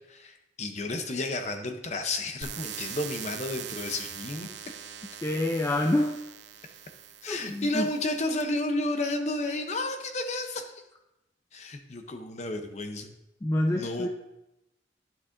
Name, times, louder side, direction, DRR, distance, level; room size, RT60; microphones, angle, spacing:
voice 1, 0.1-4.5 7.2-10.7 11.5-13.1 13.7-14.1, left 2 dB, 40° left, 6 dB, 0.7 m, -32 dB
sound 1, 2.4-8.4, right 9 dB, 80° right, 0.6 m, -42 dB
voice 2, 5.2-6.2 7.3-7.9 13.4-14.1, left 1 dB, 15° left, 3 dB, 0.3 m, -27 dB
11.0 x 6.0 x 2.6 m, 0.92 s
head